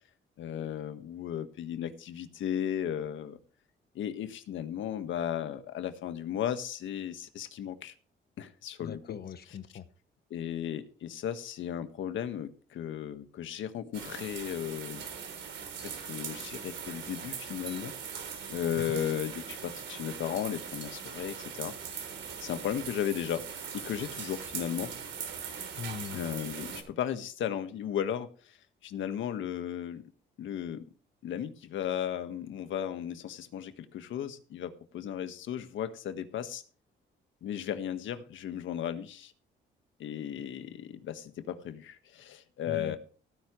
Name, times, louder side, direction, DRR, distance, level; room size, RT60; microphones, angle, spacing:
voice 1, 0.4-3.4 3.9-7.9 8.4-9.2 10.3-15.0 15.8-22.1 22.4-23.5 23.7-24.9 26.1-28.6 28.8-30.0 30.4-30.8 31.2-36.6 37.4-39.3 40.0-43.0, left 10 dB, 75° left, 9 dB, 1.5 m, -35 dB
voice 2, 8.8-9.8 18.9-19.0 25.8-26.3 42.7-43.0, left 7 dB, 55° left, 13 dB, 1.1 m, -40 dB
sound 1, 13.9-26.8, right 7 dB, 70° right, 3.5 m, -41 dB
16.5 x 10.0 x 3.2 m, 0.39 s
cardioid pair, 90°, 20 cm